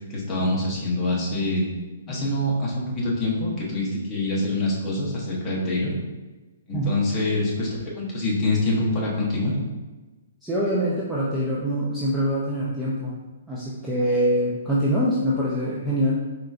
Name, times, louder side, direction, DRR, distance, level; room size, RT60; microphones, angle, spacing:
voice 1, 0.1-1.7 2.1-5.9 6.7-9.6, left 2 dB, 10° left, -5 dB, 0.8 m, -25 dB
voice 2, 10.4-13.1 13.5-16.2, equal, 5° right, -7 dB, 0.4 m, -24 dB
4.2 x 3.8 x 2.3 m, 1.2 s
hypercardioid pair, 175°, 0 cm